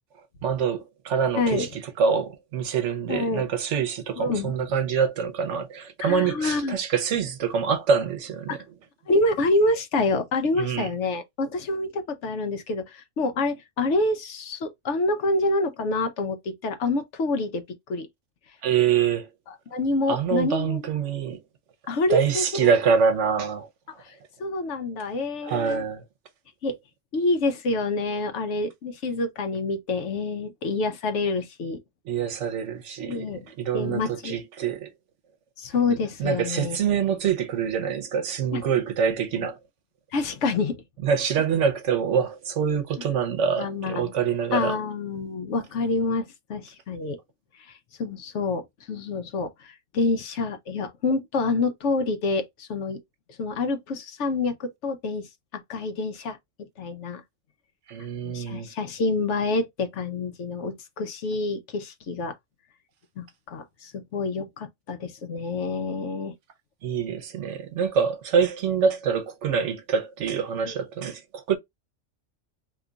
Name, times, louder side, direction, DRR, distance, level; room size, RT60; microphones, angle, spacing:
voice 1, 0.4-8.6 10.6-10.9 18.6-19.3 20.1-21.4 22.1-23.7 25.4-26.0 32.1-34.9 36.2-39.6 41.0-44.8 57.9-58.7 66.8-71.6, right 7 dB, 70° right, 1.0 m, -25 dB
voice 2, 1.3-1.7 3.1-3.4 4.2-4.6 6.0-6.8 8.5-8.6 9.1-17.6 17.9-18.1 19.5-21.0 21.9-22.7 24.0-25.8 26.6-26.8 27.1-31.8 33.1-33.5 33.7-34.4 35.6-36.8 38.5-38.6 39.4-39.5 40.1-40.8 43.6-44.1 44.5-47.2 47.7-53.0 53.4-56.4 56.8-57.2 58.2-62.3 63.2-66.3 70.6-70.8, left 3 dB, 70° left, 1.0 m, -27 dB
2.9 x 2.3 x 3.8 m
omnidirectional pair, 1.3 m